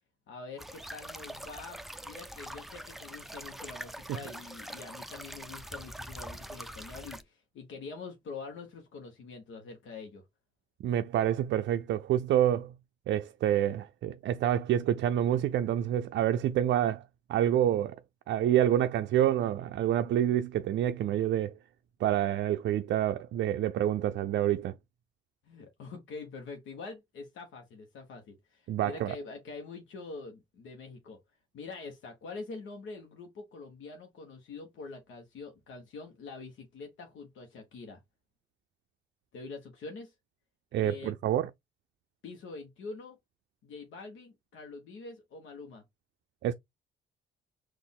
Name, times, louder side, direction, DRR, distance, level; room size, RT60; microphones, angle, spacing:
voice 1, 0.3-10.2 25.4-31.2 31.5-38.0 39.3-40.1 40.8-41.1 42.2-43.2 43.6-45.8, left 4 dB, 75° left, 1.0 m, -45 dB
sound 1, 0.6-7.2, right 1 dB, ahead, 0.4 m, -44 dB
voice 2, 10.8-12.7 13.1-17.0 17.3-18.0 18.3-21.5 22.0-24.8 28.7-29.1 40.7-41.5 46.4-46.5, right 11 dB, 65° right, 0.4 m, -27 dB
4.2 x 2.5 x 3.5 m
cardioid pair, 90°, 20 cm